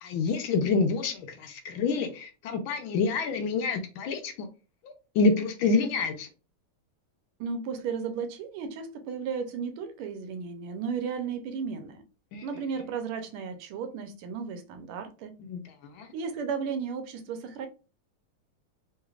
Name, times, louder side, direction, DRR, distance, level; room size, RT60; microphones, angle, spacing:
voice 1, 0.0-4.5 4.8-6.3 12.3-12.5 15.4-16.1, left 4 dB, 75° left, 1.3 m, -28 dB
voice 2, 7.4-12.0 12.4-15.3 16.1-17.7, right 6 dB, 80° right, 1.5 m, -34 dB
3.7 x 3.2 x 2.3 m
omnidirectional pair, 2.4 m